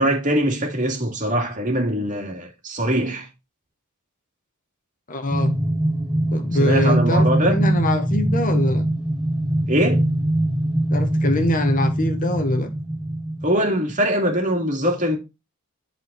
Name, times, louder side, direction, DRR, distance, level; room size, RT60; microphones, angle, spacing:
voice 1, 0.0-3.3 6.6-7.6 9.7-10.0 13.4-15.2, equal, 35° right, 2.5 m, -22 dB
voice 2, 5.1-5.6 6.3-8.9 10.9-12.7, left 1 dB, 35° left, 1.1 m, -23 dB
sound 1, 5.3-13.5, right 1 dB, 5° right, 0.8 m, -22 dB
11.5 x 4.5 x 4.1 m
head